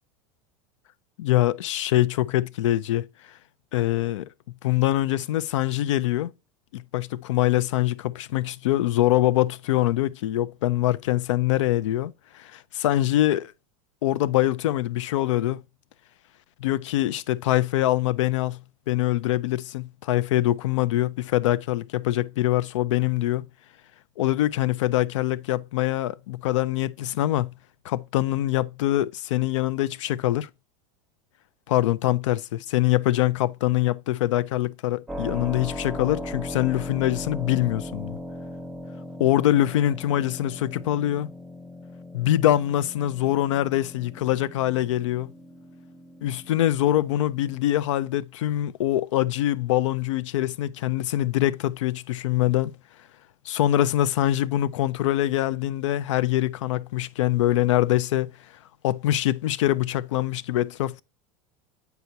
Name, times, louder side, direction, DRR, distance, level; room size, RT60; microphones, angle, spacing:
voice 1, 1.2-3.1 3.7-4.3 4.6-6.3 6.7-13.5 14.0-15.6 16.6-18.6 18.9-23.5 24.2-27.5 27.8-30.5 31.7-38.2 39.2-41.3 42.1-45.3 46.2-52.7 53.5-58.3 58.8-61.0, left 14 dB, 90° left, 0.4 m, -24 dB
Keyboard (musical), 35.1-47.6, left 1 dB, ahead, 0.5 m, -38 dB
8.0 x 4.7 x 2.6 m
supercardioid pair, 125°, 15 cm